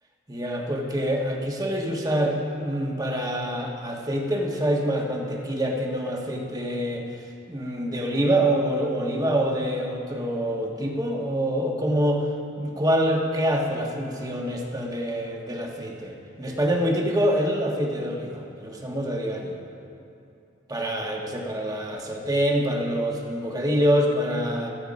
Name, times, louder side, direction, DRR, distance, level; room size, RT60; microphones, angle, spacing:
voice 1, 0.3-7.1 7.5-12.2 12.6-19.6 20.7-24.7, equal, 20° right, 0 dB, 1.6 m, -26 dB
16.0 x 14.0 x 5.4 m, 2.7 s
head